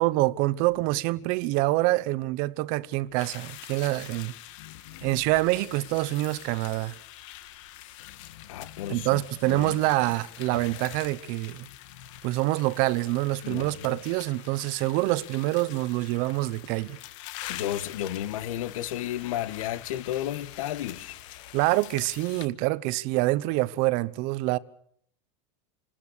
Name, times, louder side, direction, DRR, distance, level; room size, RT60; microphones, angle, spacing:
voice 1, 0.0-4.3 5.0-6.9 8.9-11.7 12.2-17.0 21.5-24.6, right 19 dB, 55° right, 1.1 m, -26 dB
sound 1, 2.0-2.1 2.5-2.6 3.1-3.3 3.7-4.0 4.3-11.6, left 8 dB, 50° left, 3.2 m, -53 dB
sound 2, 3.2-22.5, left 15 dB, 65° left, 1.9 m, -45 dB
voice 2, 4.6-5.2 8.1-9.8 11.9-12.1 13.4-14.0 17.4-21.6, left 12 dB, 85° left, 1.7 m, -34 dB
28.5 x 20.0 x 6.7 m
supercardioid pair, 140°, 17 cm